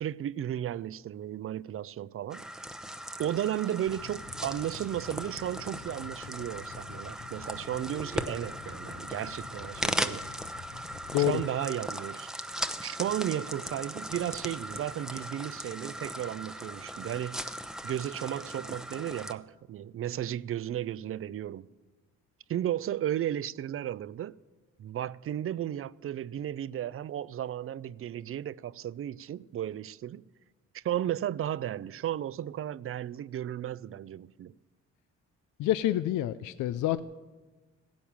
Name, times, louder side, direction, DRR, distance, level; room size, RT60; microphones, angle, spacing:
voice 1, 0.0-2.4 3.2-10.3 11.3-12.3 12.8-17.5 17.8-21.7 22.5-24.3 24.8-30.2 30.7-34.5, right 11 dB, 45° right, 0.4 m, -34 dB
sound 1, 2.3-19.3, equal, ahead, 0.8 m, -38 dB
sound 2, 3.9-11.5, left 8 dB, 55° left, 0.8 m, -48 dB
voice 2, 35.6-37.0, left 13 dB, 80° left, 0.5 m, -27 dB
15.5 x 10.5 x 7.1 m
cardioid pair, 90°, 30 cm